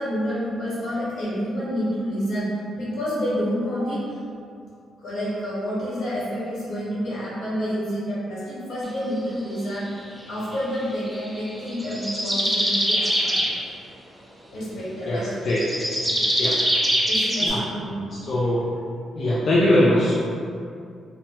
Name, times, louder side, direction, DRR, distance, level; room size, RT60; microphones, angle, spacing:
voice 1, 0.0-2.5 2.7-4.0 5.0-9.9 10.3-13.4 14.5-15.3 16.0-16.1 17.0-18.5, equal, 75° left, -10 dB, 1.4 m, -28 dB
sound 1, 11.1-13.5 15.5-17.5, equal, 5° right, 0.5 m, -23 dB
voice 2, 15.1-15.6 16.4-16.5 17.4-17.6 18.2-18.7 19.1-20.1, left 1 dB, 50° left, -7 dB, 0.4 m, -21 dB
2.9 x 2.2 x 3.0 m, 2.3 s
cardioid pair, 105°, 0 cm